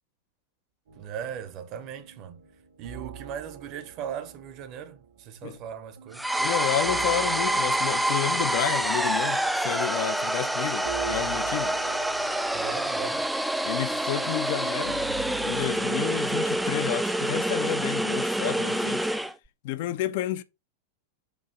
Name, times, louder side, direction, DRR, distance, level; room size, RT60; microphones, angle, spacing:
sound 1, 0.9-5.6 6.0-17.5, right 6 dB, 55° right, 1.4 m, -44 dB
voice 1, 1.0-2.4 2.8-6.3 12.5-13.3, right 8 dB, 40° right, 1.0 m, -38 dB
sound 2, 6.1-19.3, right 1 dB, 5° right, 0.5 m, -27 dB
voice 2, 6.4-11.7 13.6-15.0 15.5-19.1 19.6-20.4, left 13 dB, 50° left, 0.6 m, -31 dB
6.9 x 2.8 x 5.1 m
figure-of-eight pair, 90°, 0 cm